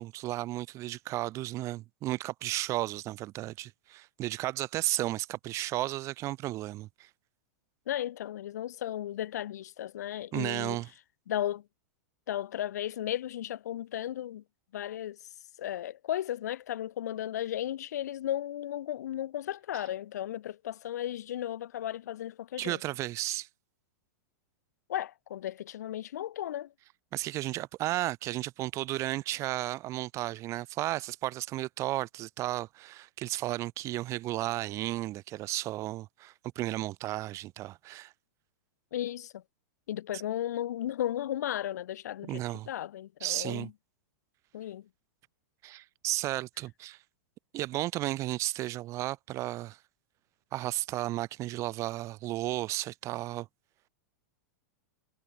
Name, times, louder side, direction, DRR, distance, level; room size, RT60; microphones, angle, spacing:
voice 1, 0.0-7.1 10.3-10.9 19.7-19.8 22.6-23.5 27.1-38.1 42.3-42.7 43.2-43.7 45.6-47.0 47.5-49.8 50.5-53.5, right 16 dB, 35° right, 0.7 m, -34 dB
voice 2, 7.9-10.8 11.3-11.6 12.3-14.4 14.7-15.2 15.6-22.8 24.9-26.7 38.9-39.4 39.9-43.7 44.5-44.9, left 12 dB, 80° left, 0.6 m, -35 dB
hypercardioid pair, 130°, 9 cm